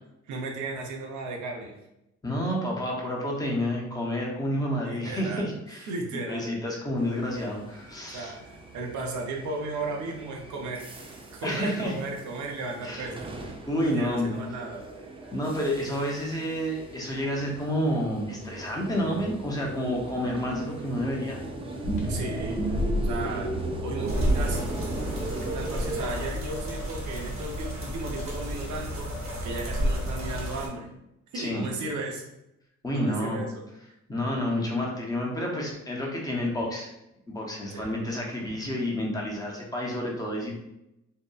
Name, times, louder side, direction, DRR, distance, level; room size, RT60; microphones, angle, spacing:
voice 1, 0.3-1.7 4.8-5.5 5.9-6.6 8.1-10.9 11.3-13.3 13.7-14.8 22.1-22.6 23.0-23.5 23.8-24.7 25.4-29.1 29.4-30.9 31.3-32.2 32.9-33.6 37.7-38.0, right 3 dB, 75° right, 1 dB, 0.6 m, -35 dB
voice 2, 2.2-5.9 6.3-8.3 11.4-11.9 12.8-13.1 13.6-14.4 15.3-21.4 31.3-31.6 32.8-33.4 34.1-36.9 37.3-40.6, equal, 15° left, -2 dB, 0.7 m, -29 dB
sound 1, 7.0-26.1, right 2 dB, 20° right, 0.3 m, -38 dB
sound 2, 21.8-25.8, equal, 70° left, 0.9 m, -32 dB
sound 3, 24.1-30.7, equal, 45° right, 0.8 m, -31 dB
2.7 x 2.1 x 2.3 m, 0.86 s
cardioid pair, 90°, 30 cm